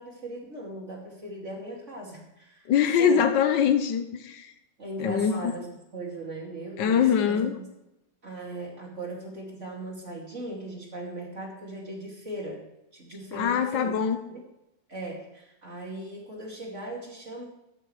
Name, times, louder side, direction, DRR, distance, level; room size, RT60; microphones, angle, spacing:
voice 1, 0.0-3.2 4.8-7.6 8.2-12.6 12.9-14.0 14.3-14.4 14.9-17.4, right 2 dB, 40° right, -1 dB, 3.0 m, -38 dB
voice 2, 2.7-4.5 5.0-5.5 6.8-7.5 13.3-14.2, left 7 dB, 85° left, 8 dB, 1.6 m, -23 dB
13.5 x 11.0 x 3.3 m, 0.88 s
omnidirectional pair, 1.9 m